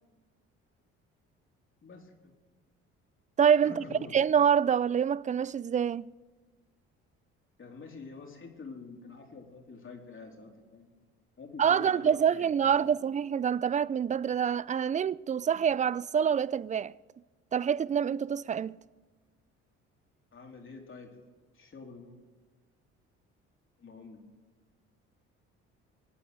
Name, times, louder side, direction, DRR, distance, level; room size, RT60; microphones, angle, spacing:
voice 1, 1.8-2.3 3.6-4.2 7.6-10.9 11.4-13.0 20.3-21.2 21.5-22.2 23.8-24.2, left 4 dB, 40° left, 3.5 m, -47 dB
voice 2, 3.4-3.8 4.1-6.1 11.6-16.9 17.5-18.8, right 8 dB, 25° right, 0.4 m, -26 dB
23.0 x 8.4 x 6.7 m
supercardioid pair, 70°, 31 cm